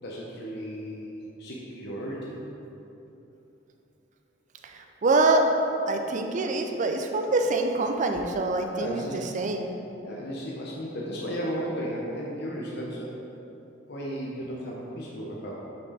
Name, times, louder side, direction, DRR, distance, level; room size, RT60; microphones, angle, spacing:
voice 1, 0.0-2.4 8.7-9.2 10.0-13.1 13.9-15.6, equal, 55° left, -4 dB, 0.7 m, -35 dB
voice 2, 4.7-5.5 5.9-9.7, right 2 dB, 40° right, 4 dB, 0.4 m, -25 dB
6.1 x 4.3 x 4.1 m, 3.0 s
head